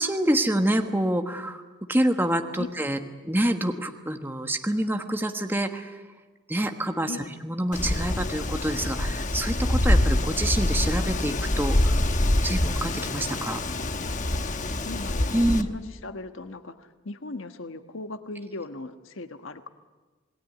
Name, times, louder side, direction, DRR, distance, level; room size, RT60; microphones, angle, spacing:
voice 1, 0.0-1.6 1.9-3.0 3.2-6.0 6.5-7.1 7.4-12.0 12.4-13.6 15.3-15.7, right 1 dB, 10° right, 5 dB, 1.3 m, -26 dB
Wind, 7.7-15.6, left 1 dB, 40° left, 1.1 m, -25 dB
voice 2, 14.8-19.7, left 2 dB, 80° left, 8 dB, 1.3 m, -38 dB
27.5 x 19.5 x 9.4 m, 1.3 s
head